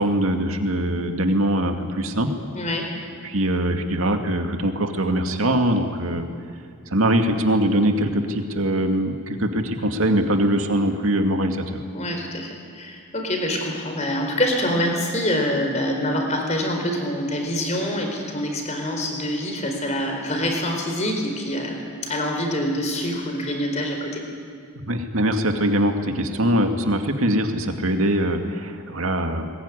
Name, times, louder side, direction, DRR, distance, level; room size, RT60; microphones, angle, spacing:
voice 1, 0.0-2.3 3.2-6.3 6.9-11.6 24.9-29.4, right 1 dB, 70° right, 5 dB, 2.3 m, -22 dB
voice 2, 2.5-2.9 11.9-24.2, left 1 dB, 30° left, 3 dB, 4.2 m, -25 dB
21.0 x 21.0 x 10.0 m, 2.3 s
head